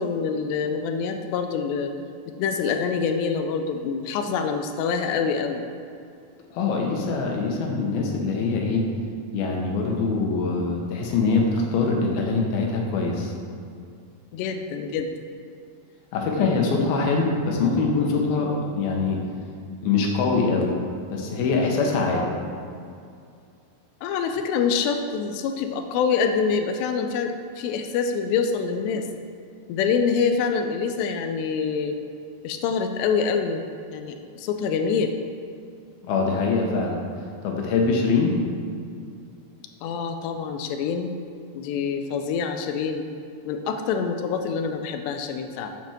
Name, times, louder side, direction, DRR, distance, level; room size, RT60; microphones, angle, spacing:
voice 1, 0.0-1.9 2.4-5.6 14.3-15.1 24.0-29.1 29.7-32.0 32.4-33.6 33.9-35.1 39.8-41.2 41.5-43.1 43.5-45.7, left 6 dB, 90° left, 6 dB, 2.8 m, -26 dB
voice 2, 6.5-8.9 9.3-13.3 16.1-19.2 19.8-20.7 21.1-22.3 36.0-37.0 37.4-38.4, left 4 dB, 70° left, 0 dB, 2.9 m, -23 dB
9.3 x 5.2 x 7.4 m, 2.4 s
omnidirectional pair, 4.8 m